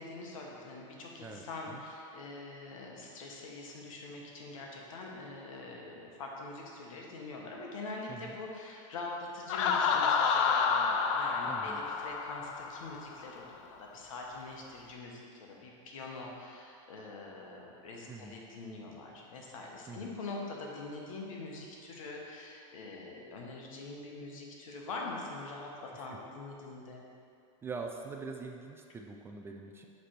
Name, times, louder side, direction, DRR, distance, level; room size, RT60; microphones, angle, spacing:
voice 1, 0.0-27.0, left 3 dB, 85° left, -1 dB, 1.2 m, -44 dB
voice 2, 1.2-1.8 8.1-8.4 11.5-11.8 18.1-18.4 19.9-20.2 25.9-26.1 27.6-29.9, right 4 dB, 15° right, 2 dB, 0.3 m, -44 dB
Laughter, 9.5-13.2, left 5 dB, 65° left, 0.5 m, -29 dB
7.5 x 3.3 x 4.4 m, 2.5 s
supercardioid pair, 135°, 17 cm